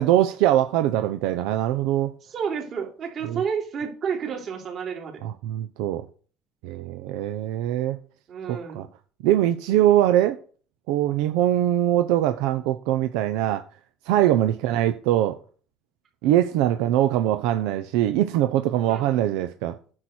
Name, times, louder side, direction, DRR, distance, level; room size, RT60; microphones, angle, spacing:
voice 1, 0.0-2.1 3.2-3.4 5.2-6.1 6.6-8.0 8.5-8.9 9.2-10.4 10.9-13.6 14.0-15.4 16.2-19.8, right 12 dB, 85° right, 0.8 m, -22 dB
voice 2, 2.2-5.2 8.3-8.9 16.2-16.4 18.9-19.1, right 6 dB, 50° right, 3.7 m, -31 dB
9.8 x 6.6 x 4.5 m
supercardioid pair, 100°, 0 cm